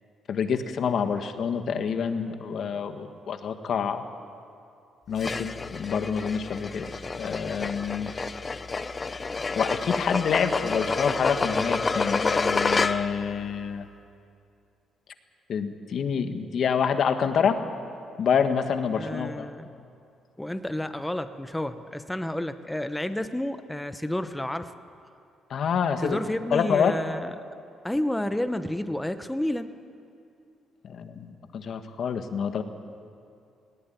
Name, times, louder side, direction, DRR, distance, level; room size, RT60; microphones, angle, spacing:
voice 1, 0.3-4.0 5.1-6.9 7.2-8.1 9.5-13.8 15.5-17.6 18.2-19.5 25.5-26.2 26.5-26.9 30.8-32.6, left 7 dB, 60° left, 8 dB, 1.5 m, -27 dB
sound 1, 5.2-13.3, left 4 dB, 30° left, 0.8 m, -29 dB
voice 2, 18.9-19.7 20.4-24.7 26.0-27.3 27.8-29.7, left 1 dB, 5° left, 10 dB, 1.0 m, -30 dB
19.0 x 17.5 x 9.3 m, 2.5 s
cardioid pair, 90°, 0 cm